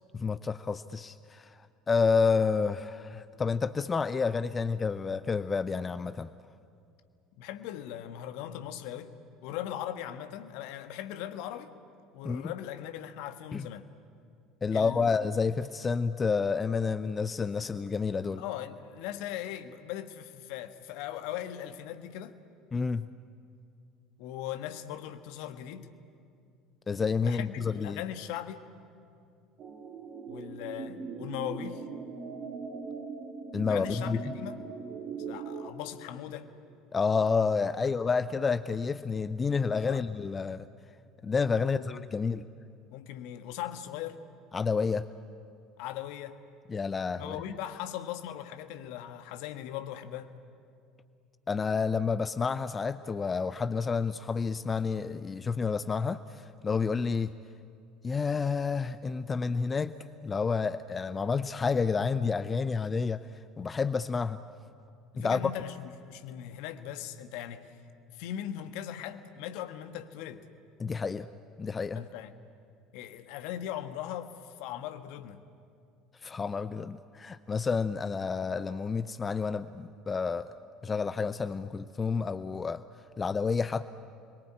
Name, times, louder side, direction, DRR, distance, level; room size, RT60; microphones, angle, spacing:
voice 1, 0.1-1.6 1.9-6.3 12.2-12.5 13.5-13.6 14.6-18.4 22.7-23.1 26.9-28.0 33.5-34.2 36.9-40.7 41.2-42.5 44.5-45.1 46.7-47.4 51.5-57.3 58.0-59.9 60.2-63.2 63.6-64.4 65.2-65.5 70.8-71.3 71.6-72.0 76.2-80.5 80.8-82.8 83.2-83.9, left 5 dB, 25° left, 14 dB, 0.6 m, -29 dB
voice 2, 7.4-9.1 9.4-11.7 12.1-13.9 14.7-15.1 18.4-22.3 24.2-25.9 27.2-28.6 30.3-31.9 33.7-34.6 35.2-36.5 39.7-40.0 41.6-42.0 42.3-42.4 42.9-44.2 45.8-46.4 47.1-50.3 65.1-67.7 68.1-70.5 71.9-72.4 72.9-75.4, left 11 dB, 60° left, 10 dB, 1.3 m, -39 dB
sound 1, 29.6-35.7, right 4 dB, 45° right, 3.0 m, -40 dB
29.5 x 22.5 x 8.7 m, 2.4 s
figure-of-eight pair, 65°, 0 cm